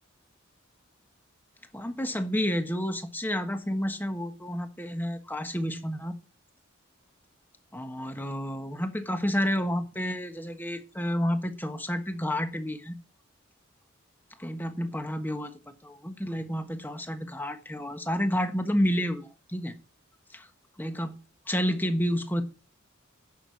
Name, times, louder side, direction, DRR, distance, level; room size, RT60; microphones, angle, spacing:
voice 1, 1.7-6.1 7.7-12.9 14.4-15.5 15.8-19.7 20.3-20.5 20.8-21.1 21.5-22.4, equal, 10° left, 7 dB, 1.4 m, -30 dB
11.0 x 6.8 x 5.7 m, 0.31 s
head